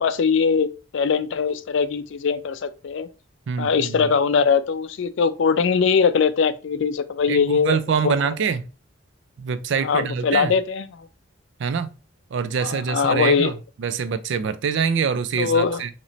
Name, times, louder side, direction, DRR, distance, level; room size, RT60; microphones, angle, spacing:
voice 1, 0.0-3.1 3.6-8.1 9.8-11.1 12.6-13.5 15.4-15.8, left 5 dB, 65° left, 0.4 m, -21 dB
voice 2, 3.5-4.1 7.3-8.7 9.4-10.5 11.6-11.9 12.3-13.5 13.8-15.9, right 6 dB, 65° right, 0.4 m, -25 dB
3.0 x 2.9 x 3.9 m
head